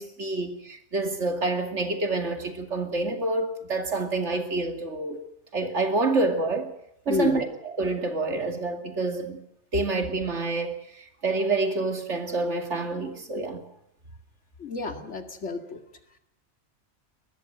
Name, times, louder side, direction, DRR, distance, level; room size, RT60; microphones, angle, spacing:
voice 1, 0.0-5.2 5.5-6.7 7.1-9.4 9.7-13.7, right 3 dB, 75° right, 2.8 m, -28 dB
voice 2, 7.1-7.4 14.6-15.8, left 4 dB, 75° left, 2.4 m, -30 dB
22.5 x 19.5 x 7.9 m
omnidirectional pair, 1.2 m